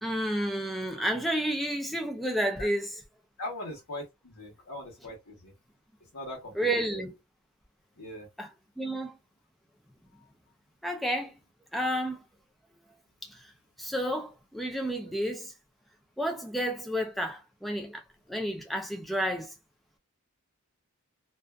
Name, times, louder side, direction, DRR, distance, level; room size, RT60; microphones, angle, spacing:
voice 1, 0.0-2.9 6.5-7.1 8.4-8.5 8.8-9.1 10.8-11.4 11.7-12.2 13.2-13.5 13.8-15.5 16.2-18.0 18.3-19.5, equal, ahead, 0.4 m, -31 dB
voice 2, 3.4-5.5 6.1-6.5 6.9-7.0 8.0-8.3, left 1 dB, 85° left, 1.1 m, -40 dB
2.5 x 2.3 x 2.2 m
head